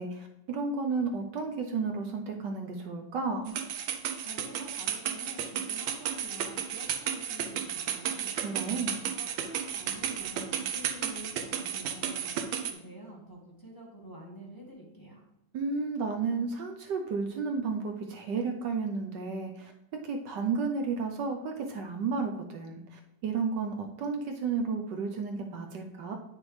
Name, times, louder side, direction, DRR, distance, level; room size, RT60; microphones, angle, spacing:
voice 1, 0.0-3.5 8.4-9.0 15.5-19.7 20.0-26.1, right 4 dB, 70° right, 3 dB, 1.3 m, -32 dB
sound 1, 3.5-12.7, right 8 dB, 85° right, 1.6 m, -33 dB
voice 2, 4.2-8.3 9.1-15.2, equal, 10° left, -3 dB, 1.5 m, -48 dB
9.7 x 6.1 x 3.2 m, 0.89 s
omnidirectional pair, 2.1 m